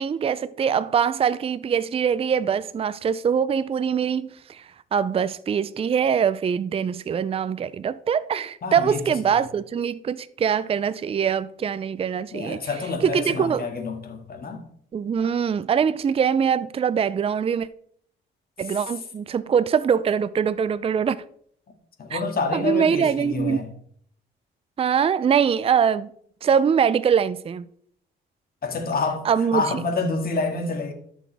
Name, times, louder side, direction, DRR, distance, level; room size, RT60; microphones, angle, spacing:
voice 1, 0.0-4.6 4.9-12.6 13.0-13.7 14.9-17.7 18.6-21.2 22.1-22.2 22.5-23.6 24.8-26.1 26.4-27.6 29.3-29.6, right 7 dB, 30° right, 0.4 m, -23 dB
voice 2, 8.6-9.0 12.3-14.6 18.6-18.9 22.0-23.7 28.6-29.2 29.5-30.9, left 4 dB, 50° left, 2.0 m, -28 dB
13.0 x 6.1 x 3.4 m
cardioid pair, 90°, 20 cm